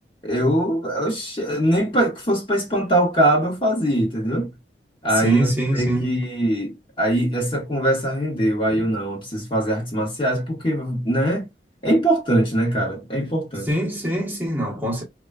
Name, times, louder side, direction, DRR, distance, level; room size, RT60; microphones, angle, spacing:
voice 1, 0.2-4.5 5.0-11.5 11.8-13.7, right 1 dB, 30° left, 1.0 m, -22 dB
voice 2, 5.1-6.2 13.7-15.0, right 1 dB, 10° right, 0.9 m, -24 dB
3.6 x 2.3 x 2.3 m
head